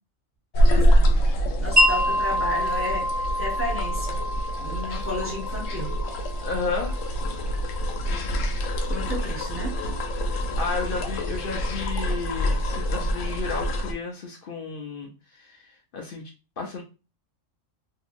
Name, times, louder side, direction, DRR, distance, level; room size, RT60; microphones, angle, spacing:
sound 1, 0.5-13.9, equal, 75° left, 0.9 m, -25 dB
voice 1, 0.7-1.2 1.6-4.2 4.6-5.9 8.9-9.8, left 1 dB, 15° right, -2 dB, 0.5 m, -33 dB
Wind chime, 1.8-7.8, left 1 dB, 40° right, 1.0 m, -27 dB
voice 2, 6.4-7.0 10.6-16.2 16.6-16.8, left 4 dB, 60° left, 1 dB, 0.6 m, -32 dB
2.7 x 2.6 x 2.4 m, 0.31 s
omnidirectional pair, 1.4 m